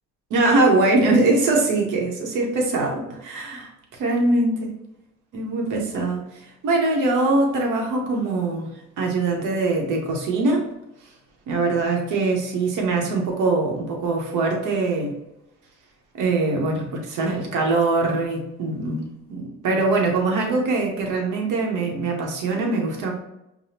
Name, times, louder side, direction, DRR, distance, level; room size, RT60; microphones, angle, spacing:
voice 1, 0.3-3.7 4.0-4.7 5.3-8.7 9.0-10.7 11.5-15.2 16.1-23.1, right 2 dB, 90° right, 0 dB, 1.0 m, -22 dB
6.0 x 2.2 x 2.7 m, 0.87 s
cardioid pair, 90°, 30 cm